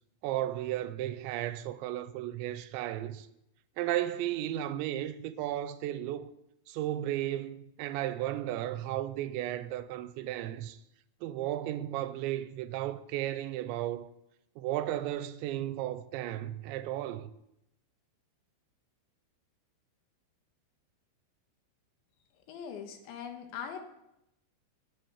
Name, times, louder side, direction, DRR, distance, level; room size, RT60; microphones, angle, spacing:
voice 1, 0.2-3.3 3.8-6.3 6.7-10.8 11.2-14.1 14.6-17.3, right 13 dB, 90° right, 3.0 m, -34 dB
voice 2, 22.5-23.8, left 7 dB, 90° left, 4.0 m, -41 dB
11.0 x 9.0 x 8.7 m
omnidirectional pair, 5.1 m